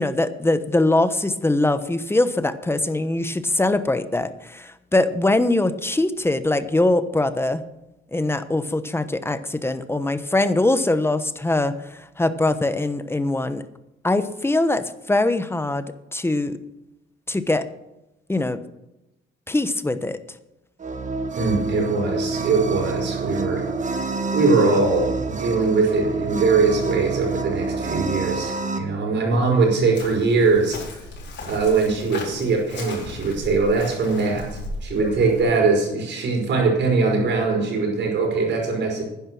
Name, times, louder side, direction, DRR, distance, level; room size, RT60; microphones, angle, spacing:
voice 1, 0.0-7.6 8.1-13.6 14.0-15.8 16.1-16.6 17.3-17.6 18.3-18.6 19.5-20.2, left 2 dB, 10° left, 12 dB, 1.0 m, -22 dB
sound 1, 20.8-28.8, right 3 dB, 40° right, 1.6 m, -27 dB
voice 2, 21.3-30.8 31.4-39.0, right 4 dB, 65° right, 1 dB, 5.3 m, -21 dB
Chirp tweet, 29.9-35.4, left 2 dB, 60° left, 4.5 m, -36 dB
10.5 x 10.5 x 6.1 m, 0.95 s
cardioid pair, 90°, 20 cm